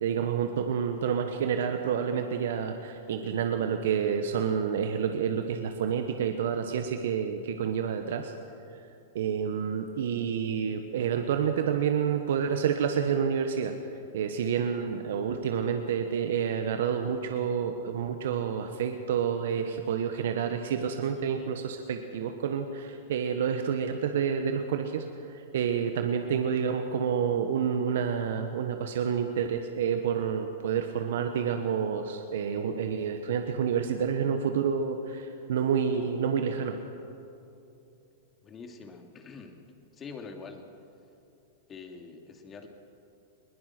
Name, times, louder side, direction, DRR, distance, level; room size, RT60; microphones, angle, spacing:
voice 1, 0.0-8.3 9.1-13.7 14.1-36.8, right 7 dB, 70° right, 6 dB, 1.3 m, -29 dB
voice 2, 38.4-39.6 39.9-40.7 41.7-42.7, left 4 dB, 25° left, 4 dB, 2.6 m, -44 dB
21.5 x 20.5 x 6.1 m, 2.7 s
hypercardioid pair, 115°, 0 cm